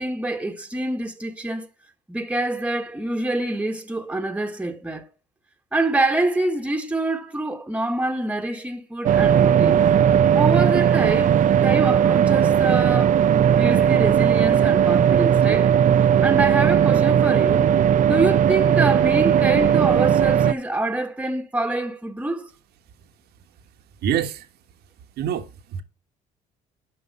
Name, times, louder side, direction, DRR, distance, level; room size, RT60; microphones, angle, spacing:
voice 1, 0.0-1.7 2.1-5.1 5.7-9.8 10.3-15.8 16.2-17.7 18.0-22.5, right 2 dB, 10° right, 1.6 m, -26 dB
sound 1, 9.0-20.5, right 9 dB, 50° right, 0.6 m, -17 dB
voice 2, 24.0-24.5 25.2-25.8, right 9 dB, 70° right, 1.5 m, -26 dB
11.0 x 5.3 x 5.5 m
cardioid pair, 110°, 17 cm